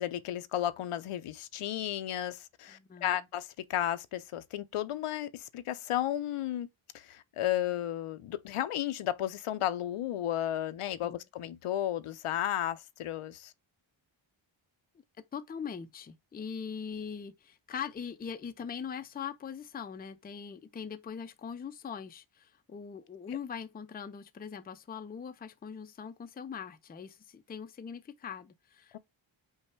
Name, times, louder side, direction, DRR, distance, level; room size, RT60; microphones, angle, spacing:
voice 1, 0.0-6.7 6.9-13.5 28.9-29.0, left 12 dB, 85° left, 0.6 m, -33 dB
voice 2, 2.7-3.3 11.0-11.2 15.3-29.0, left 7 dB, 20° left, 0.4 m, -41 dB
5.5 x 2.1 x 4.4 m
wide cardioid pair, 115°, 50 cm